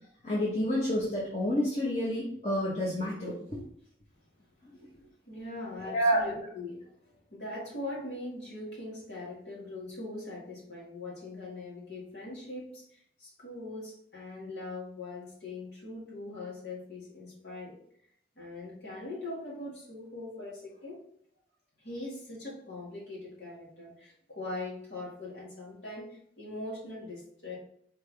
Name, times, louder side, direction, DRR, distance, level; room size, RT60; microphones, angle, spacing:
voice 1, 0.2-3.6 4.6-4.8 5.8-6.2, equal, 40° left, -6 dB, 1.0 m, -29 dB
voice 2, 5.3-17.8 18.4-21.0 21.8-27.6, left 2 dB, 80° left, -4 dB, 1.9 m, -41 dB
4.6 x 3.5 x 3.3 m, 0.66 s
head